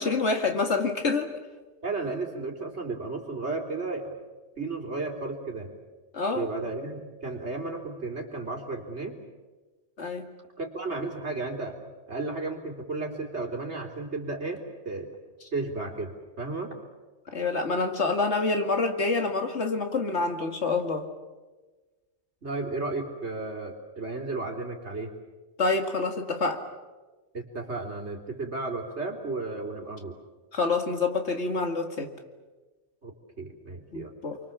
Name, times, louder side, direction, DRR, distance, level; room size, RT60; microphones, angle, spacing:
voice 1, 0.0-1.3 6.1-6.5 10.0-10.3 17.3-21.1 25.6-26.6 30.5-32.1 33.9-34.4, left 3 dB, 75° left, 5 dB, 2.5 m, -27 dB
voice 2, 1.8-4.1 4.6-5.7 6.3-9.2 10.6-11.8 12.1-15.2 15.5-16.8 22.4-25.1 27.3-30.2 33.0-34.1, right 3 dB, 70° right, 1 dB, 3.8 m, -33 dB
30.0 x 23.5 x 7.3 m, 1.3 s
omnidirectional pair, 1.2 m